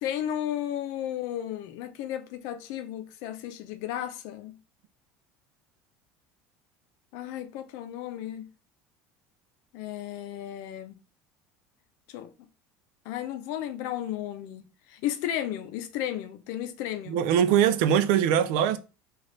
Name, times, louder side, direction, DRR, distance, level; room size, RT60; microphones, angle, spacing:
voice 1, 0.0-4.6 7.1-8.5 9.7-11.0 12.1-12.3 13.0-14.6 14.9-17.2, left 11 dB, 70° left, 0.6 m, -34 dB
voice 2, 17.1-18.8, right 9 dB, 80° right, 0.4 m, -22 dB
3.3 x 2.5 x 3.8 m
cardioid pair, 135°, 6 cm